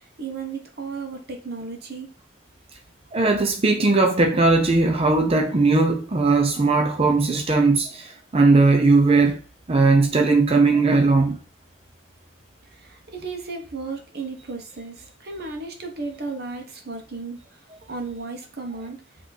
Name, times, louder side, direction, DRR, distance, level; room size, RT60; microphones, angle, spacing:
voice 1, 0.2-2.1 12.7-17.4 17.9-19.0, right 4 dB, 55° right, 1.2 m, -34 dB
voice 2, 3.1-8.1 8.3-9.4 9.7-11.4, right 3 dB, 30° right, 0.6 m, -18 dB
8.0 x 3.1 x 4.1 m
head